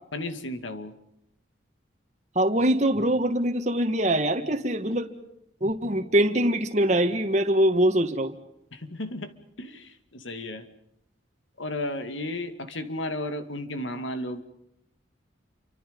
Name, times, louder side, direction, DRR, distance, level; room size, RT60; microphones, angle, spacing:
voice 1, 0.1-0.9 8.7-9.3 9.6-10.7 11.6-14.4, left 1 dB, 85° left, 10 dB, 2.3 m, -33 dB
voice 2, 2.4-5.1 5.6-8.3, right 1 dB, 35° right, 5 dB, 1.7 m, -23 dB
29.5 x 25.5 x 5.4 m, 0.80 s
head